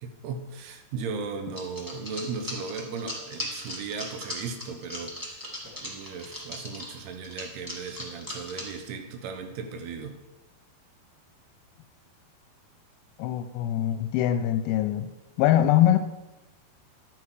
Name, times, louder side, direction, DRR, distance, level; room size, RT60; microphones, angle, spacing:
voice 1, 0.0-10.2, right 5 dB, 85° right, 7 dB, 3.1 m, -37 dB
sound 1, 1.6-8.8 9.3-9.4 9.6-9.7, left 1 dB, 30° right, 0.3 m, -38 dB
voice 2, 13.2-15.1 15.4-16.0, left 12 dB, 85° left, 9 dB, 2.3 m, -23 dB
12.0 x 8.3 x 4.8 m, 1.0 s
omnidirectional pair, 4.6 m